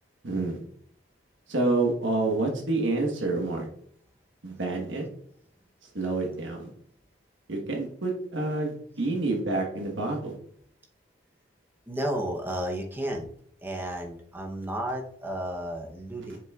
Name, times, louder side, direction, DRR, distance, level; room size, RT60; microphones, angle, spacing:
voice 1, 0.2-0.6 1.5-3.7 4.4-5.0 5.9-6.7 7.5-10.3, right 2 dB, 80° right, 1 dB, 1.3 m, -28 dB
voice 2, 11.9-13.3 13.6-16.4, right 1 dB, 10° right, 2 dB, 0.8 m, -32 dB
7.6 x 6.1 x 2.4 m, 0.63 s
head